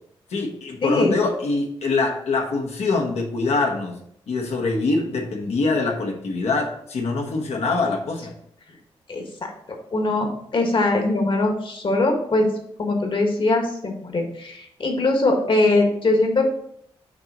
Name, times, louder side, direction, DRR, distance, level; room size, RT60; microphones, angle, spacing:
voice 1, 0.3-4.0 4.3-8.3, left 3 dB, 75° left, 1 dB, 1.3 m, -24 dB
voice 2, 0.8-1.2 9.1-9.2 9.9-10.3 10.5-12.5 12.8-16.4, left 2 dB, 50° left, 3 dB, 1.6 m, -21 dB
6.6 x 3.0 x 5.2 m, 0.69 s
supercardioid pair, 55°, 11 cm